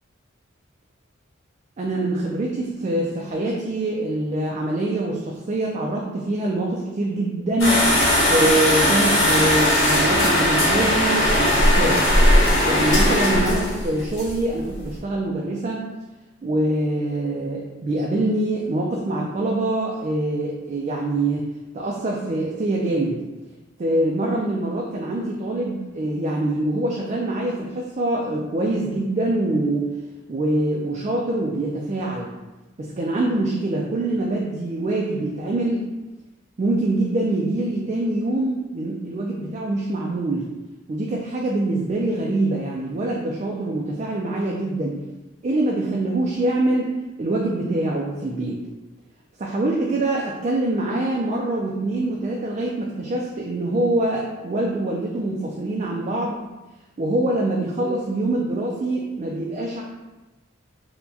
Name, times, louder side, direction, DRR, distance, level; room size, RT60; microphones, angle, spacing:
voice 1, 1.8-8.0 8.3-12.0 12.6-15.9 16.4-21.5 21.7-23.2 23.8-29.9 30.3-32.3 32.8-35.9 36.6-40.5 40.9-45.0 45.4-46.9 47.2-48.6 49.4-56.4 57.0-59.8, right 1 dB, 35° right, -2 dB, 0.3 m, -24 dB
sound 1, 7.6-15.0, left 1 dB, 75° left, 1.5 m, -18 dB
4.3 x 2.1 x 2.7 m, 1.1 s
head